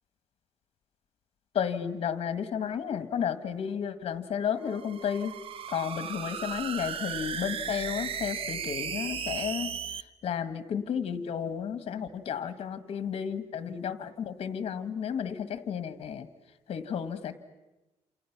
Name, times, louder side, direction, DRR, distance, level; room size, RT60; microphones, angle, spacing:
voice 1, 1.6-5.3 5.7-9.7 10.2-16.3 16.7-17.4, left 8 dB, 55° left, 10 dB, 1.8 m, -32 dB
sound 1, 4.6-10.0, right 7 dB, 55° right, 0.8 m, -36 dB
28.5 x 28.5 x 6.1 m, 1.0 s
cardioid pair, 145°, 12 cm